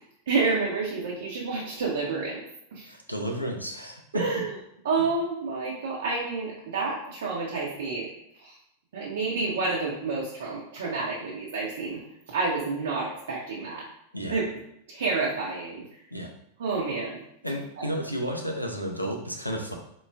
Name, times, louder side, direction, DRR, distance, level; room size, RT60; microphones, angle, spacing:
voice 1, 0.3-2.4 2.7-2.8 4.1-4.5 4.8-8.1 8.9-12.0 12.3-13.8 14.3-14.4 14.9-15.8 16.6-17.1, right 4 dB, 60° right, -4 dB, 0.8 m, -29 dB
voice 2, 2.8-4.2 14.1-14.4 16.1-16.3 17.4-19.7, equal, 90° left, 1 dB, 0.6 m, -32 dB
4.6 x 2.3 x 3.4 m, 0.76 s
figure-of-eight pair, 90°, 0 cm